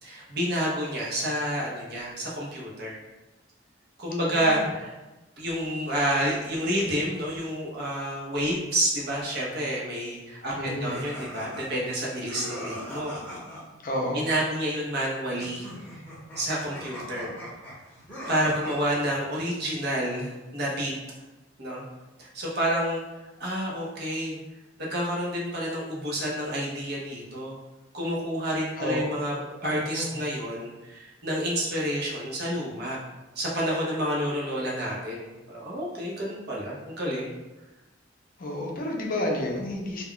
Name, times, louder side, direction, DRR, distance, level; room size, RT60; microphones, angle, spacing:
voice 1, 0.0-3.0 4.0-4.9 5.4-13.1 14.1-16.0 16.4-17.3 18.3-20.9 21.6-21.8 22.2-23.0 23.4-24.4 24.8-27.6 27.9-29.3 29.6-33.0 33.4-37.4, equal, 60° right, -4 dB, 0.8 m, -29 dB
voice 2, 4.2-4.7 10.6-10.9 13.8-14.3 28.8-29.0 29.7-30.2 38.4-40.0, left 1 dB, 50° left, 0 dB, 0.5 m, -31 dB
sound 1, 10.8-13.6 15.4-19.2, equal, 10° left, 0.8 m, -40 dB
2.3 x 2.2 x 3.7 m, 1.1 s
head